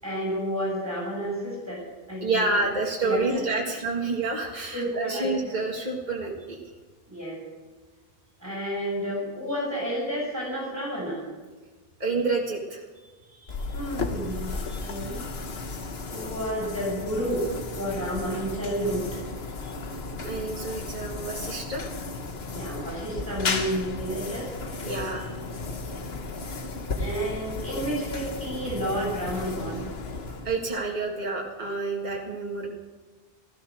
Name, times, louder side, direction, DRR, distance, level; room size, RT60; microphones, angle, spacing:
voice 1, 0.0-1.8 2.1-2.4 3.0-3.4 3.7-3.8 4.7-5.3 7.1-7.4 8.4-11.2 13.7-15.2 16.1-17.5 17.8-19.1 22.5-24.9 26.9-29.8, equal, 15° right, -4 dB, 7.3 m, -31 dB
voice 2, 2.2-6.6 12.0-12.8 13.4-13.8 14.7-15.0 20.2-21.9 24.8-25.3 30.4-32.7, right 3 dB, 45° right, -2 dB, 2.0 m, -29 dB
sound 1, 13.5-30.9, left 3 dB, 75° left, 1.4 m, -34 dB
16.0 x 13.5 x 6.3 m, 1.3 s
omnidirectional pair, 1.1 m